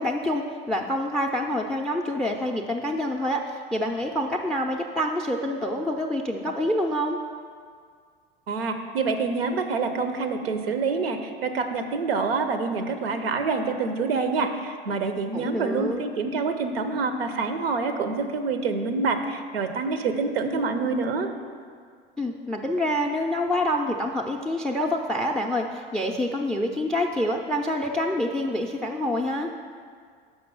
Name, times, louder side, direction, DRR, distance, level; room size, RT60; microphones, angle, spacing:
voice 1, 0.0-7.2 15.3-16.0 22.2-29.5, left 1 dB, ahead, 3 dB, 0.3 m, -27 dB
voice 2, 8.5-21.3, right 4 dB, 85° right, 7 dB, 0.6 m, -26 dB
6.0 x 5.3 x 5.4 m, 2.1 s
hypercardioid pair, 75°, 29 cm